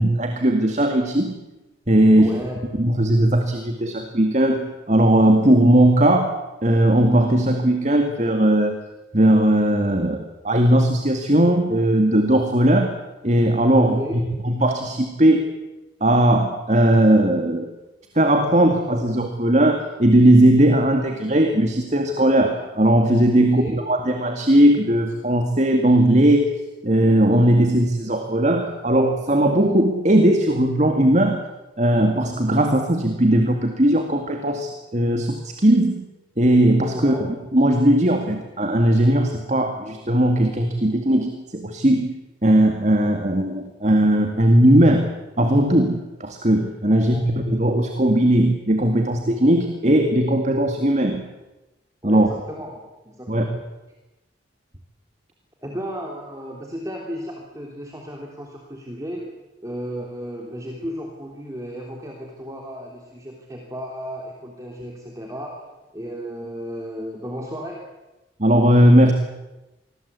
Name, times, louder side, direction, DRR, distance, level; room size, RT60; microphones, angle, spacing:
voice 1, 0.0-1.4 1.9-2.4 2.8-6.4 6.6-8.8 9.1-13.0 13.2-15.5 16.0-17.7 18.2-31.4 31.8-36.1 36.4-51.2 52.0-52.3 53.3-53.6 68.4-69.1, right 1 dB, 35° right, 5 dB, 2.2 m, -18 dB
voice 2, 2.2-2.6 13.8-14.2 23.4-23.8 36.9-37.3 46.9-47.2 52.0-53.6 55.6-59.3 59.6-65.6 65.9-67.8, equal, 15° right, 0 dB, 3.2 m, -34 dB
26.5 x 21.5 x 8.4 m, 1.0 s
head